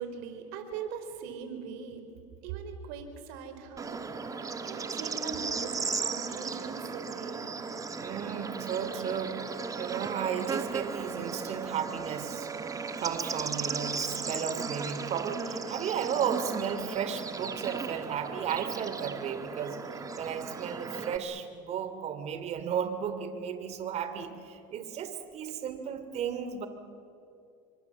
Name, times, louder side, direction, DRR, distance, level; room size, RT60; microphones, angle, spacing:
voice 1, 0.0-2.0 2.4-4.0 4.7-7.6, right 6 dB, 70° right, 7 dB, 4.2 m, -40 dB
Bird / Insect, 3.8-21.2, right 5 dB, 20° right, 1.8 m, -36 dB
voice 2, 8.0-12.5 13.0-26.7, right 8 dB, 45° right, 9 dB, 2.8 m, -34 dB
27.5 x 24.5 x 7.3 m, 2.7 s
supercardioid pair, 100°, 15 cm